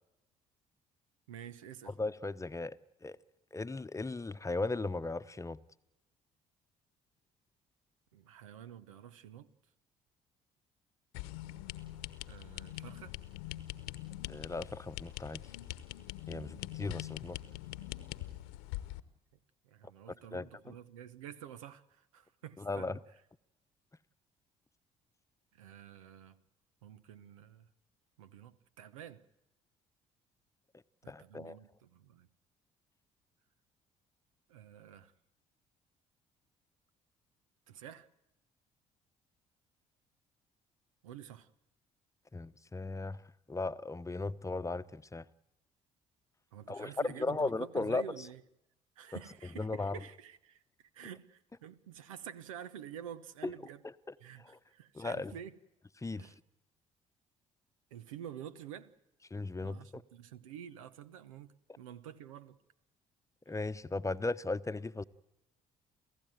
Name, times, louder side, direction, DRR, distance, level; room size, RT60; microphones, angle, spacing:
voice 1, 1.3-1.9 8.1-9.5 12.2-13.2 19.6-23.0 25.5-26.4 26.8-27.7 28.2-29.2 31.0-32.3 34.5-35.1 37.7-38.1 41.0-41.5 46.5-48.4 49.0-50.6 50.9-53.8 54.2-55.6 56.2-56.4 57.9-58.9 59.6-62.6, right 9 dB, 90° right, 1.0 m, -49 dB
voice 2, 1.9-3.2 3.5-5.6 14.3-15.4 16.3-17.4 20.3-20.7 22.6-23.0 31.1-31.6 42.3-43.2 43.5-45.3 46.7-48.3 49.6-50.0 53.4-53.5 53.8-53.9 54.4-54.6 54.9-55.3 56.0-56.3 59.3-60.0 63.5-65.0, left 3 dB, 20° left, 0.9 m, -37 dB
sound 1, 11.1-19.0, left 15 dB, 80° left, 1.0 m, -43 dB
29.0 x 15.5 x 9.2 m
hypercardioid pair, 55°, 17 cm